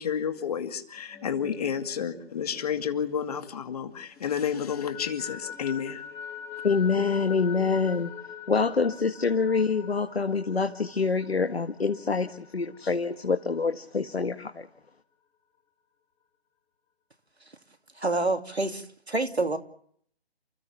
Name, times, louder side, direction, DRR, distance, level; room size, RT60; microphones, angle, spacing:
voice 1, 0.0-6.0, left 8 dB, 35° left, 7 dB, 2.4 m, -30 dB
sound 1, 1.0-3.8 4.2-13.6, left 8 dB, 10° left, 2.0 m, -44 dB
voice 2, 6.6-8.1 8.5-14.7, left 4 dB, 70° left, 6 dB, 1.9 m, -26 dB
voice 3, 18.0-19.6, right 2 dB, 85° right, 6 dB, 3.0 m, -27 dB
29.5 x 15.5 x 7.3 m, 0.62 s
figure-of-eight pair, 150°, 32 cm